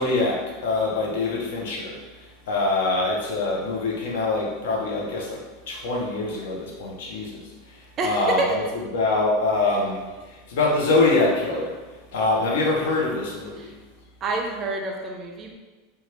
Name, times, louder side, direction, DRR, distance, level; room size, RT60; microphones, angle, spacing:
voice 1, 0.0-2.0 2.5-5.4 5.7-7.4 8.0-8.4 8.9-10.1 10.5-11.7 12.1-13.5, left 3 dB, 70° left, -2 dB, 0.7 m, -24 dB
voice 2, 8.0-8.6 13.6-13.7 14.2-15.5, right 3 dB, 20° right, 1 dB, 0.3 m, -27 dB
2.9 x 2.3 x 3.2 m, 1.3 s
supercardioid pair, 180°, 0 cm